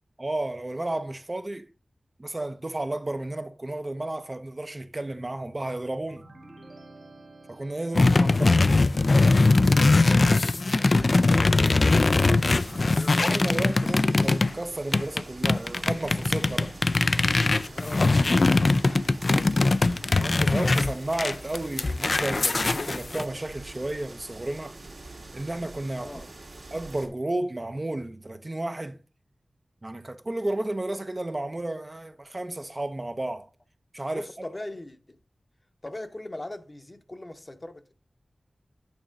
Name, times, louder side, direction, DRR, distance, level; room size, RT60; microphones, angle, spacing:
voice 1, 0.2-1.7 2.2-6.2 7.5-8.5 9.0-9.1 12.9-16.7 20.2-24.8 25.3-26.1 26.7-29.0 29.8-33.5 33.9-34.3, right 2 dB, 30° right, 0.6 m, -32 dB
sound 1, 6.0-8.8, right 2 dB, 55° right, 1.3 m, -50 dB
sound 2, 7.9-14.5 14.9-23.2, left 3 dB, 50° left, 0.3 m, -21 dB
voice 2, 7.9-8.6 10.7-13.8 17.7-18.6 26.0-26.3 34.1-35.1 35.8-37.9, left 1 dB, 30° left, 0.8 m, -41 dB
sound 3, 11.1-27.1, right 2 dB, 75° right, 1.9 m, -45 dB
8.9 x 3.0 x 6.2 m
wide cardioid pair, 80°, 0 cm